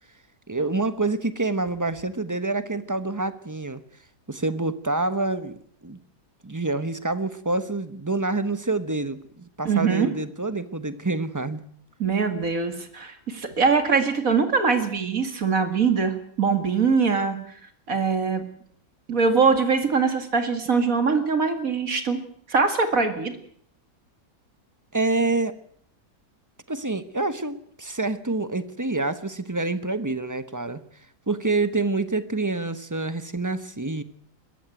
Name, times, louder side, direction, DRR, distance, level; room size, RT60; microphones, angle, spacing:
voice 1, 0.5-3.8 4.3-5.6 5.8-6.0 6.4-11.6 24.9-25.6 26.7-30.8 31.3-34.0, right 2 dB, 15° right, 12 dB, 1.0 m, -27 dB
voice 2, 9.6-10.1 12.0-17.4 17.9-18.4 19.1-22.2 22.5-23.4, right 5 dB, 60° right, 8 dB, 2.5 m, -22 dB
21.5 x 14.5 x 9.2 m, 0.65 s
omnidirectional pair, 1.6 m